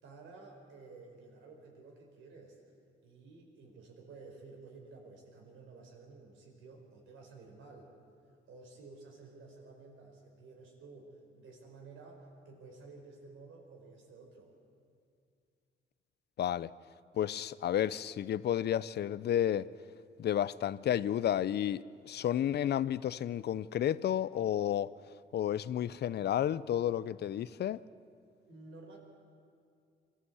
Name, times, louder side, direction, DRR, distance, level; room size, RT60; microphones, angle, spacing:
voice 1, 0.0-2.6 3.0-7.9 8.5-14.5 28.5-29.0, right 3 dB, 80° right, 4.7 m, -53 dB
voice 2, 16.4-16.7 17.2-19.7 20.2-24.9 25.3-27.8, left 10 dB, 55° left, 0.6 m, -31 dB
24.0 x 14.5 x 8.1 m
cardioid pair, 90°, 20 cm